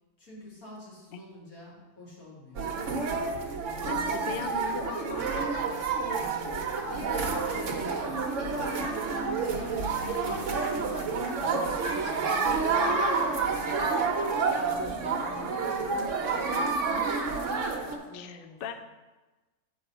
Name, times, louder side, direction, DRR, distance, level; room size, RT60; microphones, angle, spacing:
voice 1, 0.2-2.8 3.5-4.4 5.2-5.5 6.1-6.6 6.9-13.5 14.6-16.1 16.4-16.9 18.1-18.7, left 1 dB, 65° left, -6 dB, 2.9 m, -46 dB
sound 1, 2.6-18.0, right 4 dB, 55° right, 1.1 m, -29 dB
voice 2, 3.8-5.7 16.9-17.1 18.1-18.7, left 7 dB, 85° left, 8 dB, 0.5 m, -39 dB
7.0 x 4.6 x 6.0 m, 1.2 s
omnidirectional pair, 1.7 m